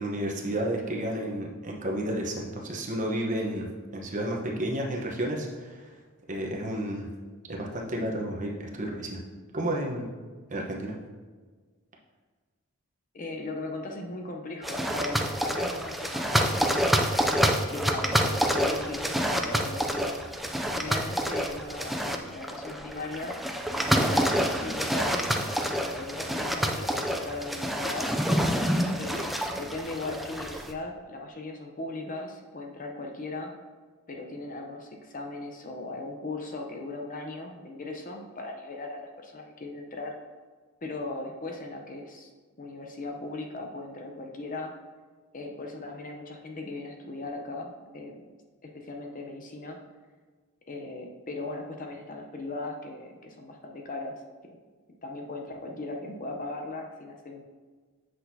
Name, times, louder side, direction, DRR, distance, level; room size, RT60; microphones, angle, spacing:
voice 1, 0.0-3.7 3.9-5.9 6.3-7.1 7.5-9.2 9.5-10.1 10.5-11.0, right 1 dB, 35° right, 0 dB, 1.0 m, -31 dB
voice 2, 13.1-16.8 17.2-20.2 20.7-23.4 23.8-28.1 29.0-33.5 34.1-40.2 40.8-42.3 42.6-44.7 45.3-48.2 48.6-49.8 50.7-54.1 54.5-54.6 55.0-57.4, left 2 dB, 40° left, 2 dB, 0.7 m, -38 dB
sound 1, 14.6-30.7, equal, ahead, 0.3 m, -27 dB
8.0 x 6.1 x 2.7 m, 1.4 s
head